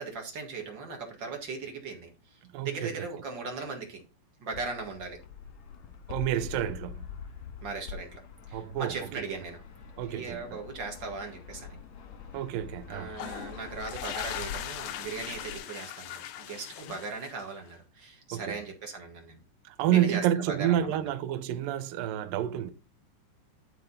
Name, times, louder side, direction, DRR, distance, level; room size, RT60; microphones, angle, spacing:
voice 1, 0.0-4.0 4.4-5.2 7.6-8.2 8.5-9.6 10.0-11.7 12.9-19.4 19.9-21.0, right 4 dB, 45° right, 1.4 m, -38 dB
voice 2, 2.5-3.1 6.1-7.1 8.5-9.2 10.0-10.6 12.3-13.2 18.3-18.6 19.7-22.7, right 11 dB, 80° right, 2.0 m, -29 dB
Fixed-wing aircraft airplane, 4.5-15.6, left 7 dB, 60° left, 1.9 m, -45 dB
sound 1, 13.1-17.7, left 11 dB, 90° left, 1.9 m, -39 dB
12.0 x 5.4 x 4.0 m
omnidirectional pair, 5.0 m